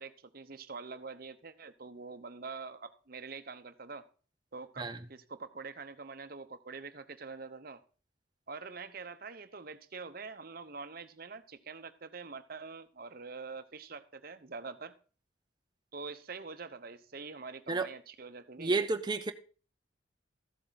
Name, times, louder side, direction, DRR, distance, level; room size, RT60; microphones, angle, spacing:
voice 1, 0.0-4.0 4.5-7.8 8.5-14.9 15.9-18.8, right 4 dB, 50° right, 0.9 m, -45 dB
voice 2, 18.6-19.3, right 3 dB, 20° right, 0.7 m, -31 dB
14.0 x 7.6 x 4.0 m
head